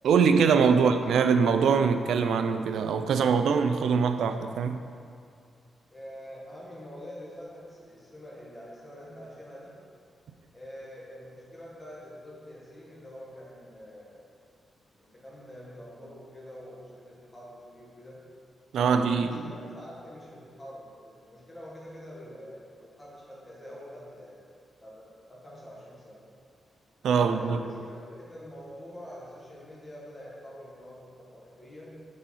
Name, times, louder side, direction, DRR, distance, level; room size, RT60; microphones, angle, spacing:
voice 1, 0.0-4.9 18.7-19.5 27.0-27.6, right 6 dB, 85° right, 0.4 m, -23 dB
voice 2, 5.9-9.8 10.5-14.3 15.0-18.2 18.8-24.5 24.8-26.2 27.1-32.0, equal, 15° left, 1.6 m, -46 dB
6.4 x 4.1 x 5.5 m
wide cardioid pair, 165°, 0 cm